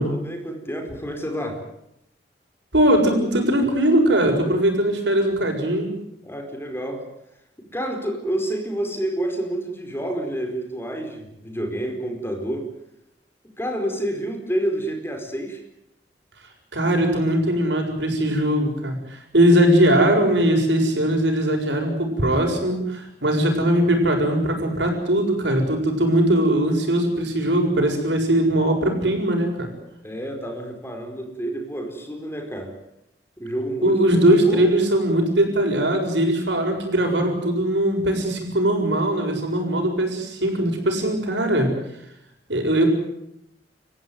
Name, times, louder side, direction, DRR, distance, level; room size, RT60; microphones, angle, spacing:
voice 1, 0.2-1.6 6.2-7.1 7.6-12.7 13.6-15.6 30.0-32.7 33.4-34.7, right 1 dB, 15° left, 4 dB, 4.8 m, -29 dB
voice 2, 2.7-5.9 16.7-29.7 33.8-41.7 42.5-42.8, right 1 dB, 75° right, 3 dB, 7.2 m, -20 dB
30.0 x 15.5 x 9.4 m, 0.80 s
head